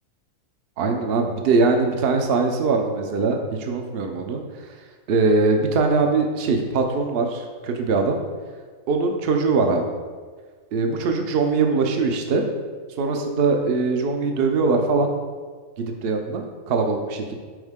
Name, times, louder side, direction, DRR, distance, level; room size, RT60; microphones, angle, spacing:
voice 1, 0.8-4.4 5.1-8.2 8.9-9.9 10.7-12.4 13.0-15.1 15.8-17.3, right 4 dB, 55° right, 4 dB, 0.8 m, -22 dB
6.3 x 4.3 x 3.6 m, 1.5 s
omnidirectional pair, 1.5 m